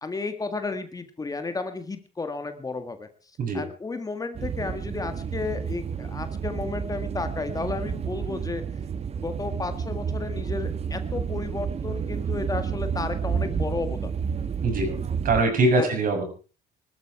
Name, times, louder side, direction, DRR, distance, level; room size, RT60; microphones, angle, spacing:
voice 1, 0.0-3.1 3.5-8.6 9.2-14.1 15.8-15.9, left 3 dB, 20° left, 8 dB, 1.7 m, -33 dB
sound 1, 4.3-15.4, right 6 dB, 40° right, 1.3 m, -30 dB
voice 2, 14.6-14.9 15.2-16.2, right 2 dB, 55° right, 4 dB, 6.8 m, -22 dB
20.0 x 13.0 x 4.8 m, 0.37 s
cardioid pair, 110°, 17 cm